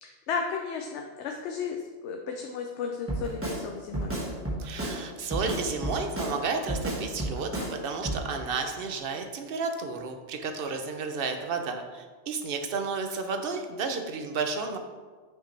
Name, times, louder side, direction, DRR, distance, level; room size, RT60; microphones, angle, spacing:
voice 1, 0.0-4.1, left 5 dB, 85° left, 3 dB, 0.9 m, -34 dB
Drum kit, 3.1-3.6 3.9-5.0 5.3-6.4 6.7-7.7 8.0-8.2, right 1 dB, 10° right, 1.5 m, -31 dB
voice 2, 4.6-14.8, right 4 dB, 60° right, 5 dB, 0.8 m, -32 dB
6.4 x 5.6 x 3.3 m, 1.4 s
omnidirectional pair, 1.1 m